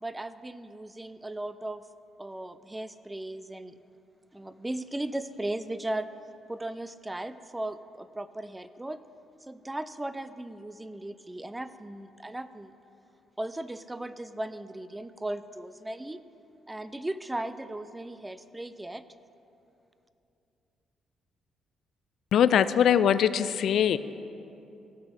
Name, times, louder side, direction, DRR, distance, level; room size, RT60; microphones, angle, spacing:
voice 1, 0.0-1.8 2.2-3.7 4.3-6.1 6.5-9.0 9.4-12.7 13.4-16.2 16.7-19.0, right 1 dB, 15° right, 13 dB, 0.4 m, -37 dB
voice 2, 22.3-24.0, left 9 dB, 70° left, 14 dB, 0.3 m, -22 dB
15.5 x 6.0 x 6.6 m, 2.8 s
cardioid pair, 90°, 0 cm